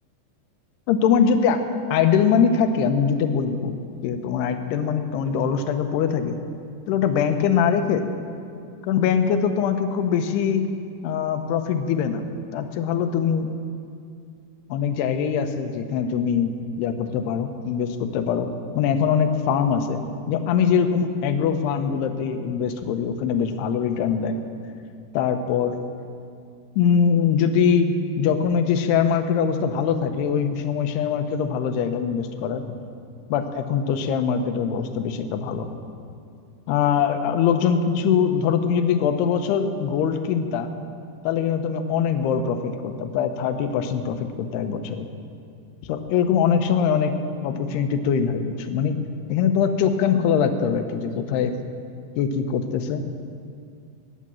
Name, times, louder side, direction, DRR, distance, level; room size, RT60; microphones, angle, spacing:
voice 1, 0.9-1.6 1.9-6.4 6.9-8.0 8.9-10.7 11.0-12.2 12.5-13.5 14.7-18.5 18.8-20.0 20.3-24.4 25.1-25.8 26.8-32.7 33.3-35.8 36.7-40.7 41.2-45.1 45.9-49.0 49.3-51.6 52.2-53.1, left 7 dB, 80° left, 8 dB, 2.8 m, -22 dB
14.0 x 9.7 x 7.5 m, 2.4 s
omnidirectional pair, 4.8 m